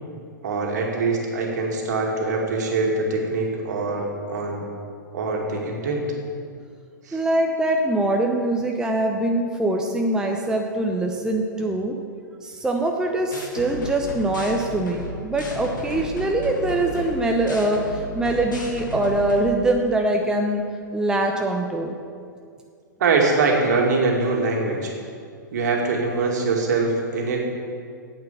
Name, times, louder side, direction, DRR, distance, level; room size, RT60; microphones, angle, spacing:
voice 1, 0.4-4.7 5.1-6.0 7.0-7.2 23.0-25.0 25.5-27.5, right 3 dB, 55° right, 0 dB, 2.2 m, -23 dB
voice 2, 7.1-12.0 12.4-20.6 20.9-22.0, right 1 dB, 5° right, 2 dB, 0.8 m, -23 dB
sound 1, 13.3-19.4, left 1 dB, 65° left, 2.1 m, -33 dB
9.1 x 8.9 x 7.1 m, 2.2 s
figure-of-eight pair, 105°, 11 cm